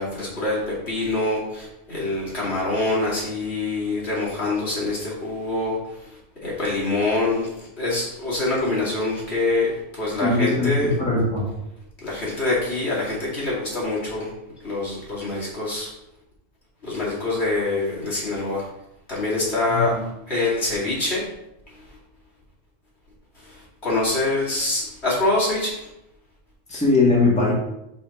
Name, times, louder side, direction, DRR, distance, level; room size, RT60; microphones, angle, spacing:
voice 1, 0.0-11.0 12.0-14.3 14.6-15.9 16.8-18.7 19.1-21.2 23.4-25.9, left 2 dB, 65° left, -7 dB, 2.9 m, -25 dB
voice 2, 10.2-11.5 19.7-20.0 26.7-27.5, left 3 dB, 5° left, -5 dB, 1.7 m, -20 dB
5.5 x 4.4 x 5.7 m, 0.86 s
omnidirectional pair, 1.2 m